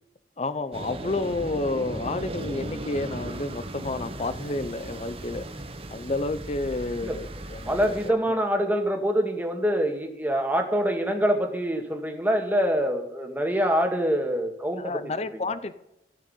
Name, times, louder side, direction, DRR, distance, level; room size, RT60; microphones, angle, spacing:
voice 1, 0.4-5.4 5.9-7.8 8.1-8.2 13.7-13.9 14.8-15.7, left 2 dB, 35° left, 13 dB, 0.6 m, -30 dB
sound 1, 0.7-8.1, right 1 dB, 35° right, 1.1 m, -37 dB
voice 2, 7.7-15.0 15.5-15.6, equal, 10° right, 3 dB, 1.9 m, -25 dB
15.0 x 6.5 x 9.2 m, 0.83 s
head